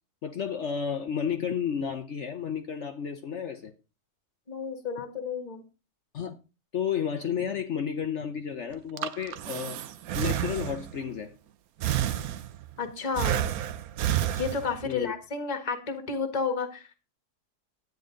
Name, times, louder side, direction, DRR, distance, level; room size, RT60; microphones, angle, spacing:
voice 1, 0.2-3.7 6.1-6.4 6.7-9.8 10.1-11.3 14.8-15.1, left 7 dB, 55° left, 1.0 m, -32 dB
voice 2, 4.5-5.6 12.8-13.5 14.3-16.9, left 5 dB, 30° left, 1.5 m, -31 dB
Breathing, 8.7-11.0 11.8-12.7 13.2-15.0, right 11 dB, 70° right, 1.1 m, -30 dB
10.5 x 9.1 x 3.8 m
omnidirectional pair, 1.7 m